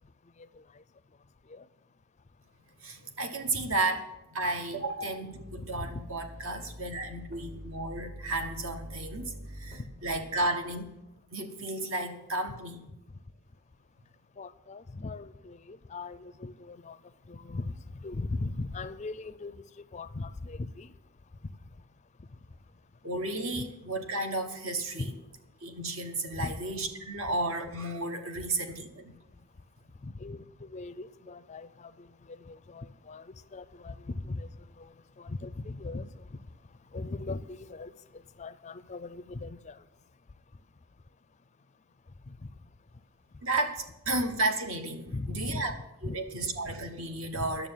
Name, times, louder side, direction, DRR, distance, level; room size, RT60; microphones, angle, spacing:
voice 1, 0.4-0.8 1.4-1.7 3.5-3.8 5.7-6.0 6.4-6.7 9.8-9.9 14.4-21.0 21.4-21.6 22.2-22.3 23.5-23.7 25.0-25.2 26.4-26.6 28.3-28.5 30.0-39.9 42.3-42.5 43.3-43.4 45.1-45.6 46.0-46.6 47.3-47.6, left 3 dB, 30° left, 0.4 m, -40 dB
voice 2, 2.8-4.0 4.3-10.9 11.3-12.8 23.0-25.1 25.6-29.1 43.4-45.7 46.0-47.7, right 2 dB, 65° right, 1.4 m, -33 dB
sound 1, 5.3-10.3, equal, 35° right, 1.0 m, -45 dB
11.0 x 7.0 x 8.9 m
head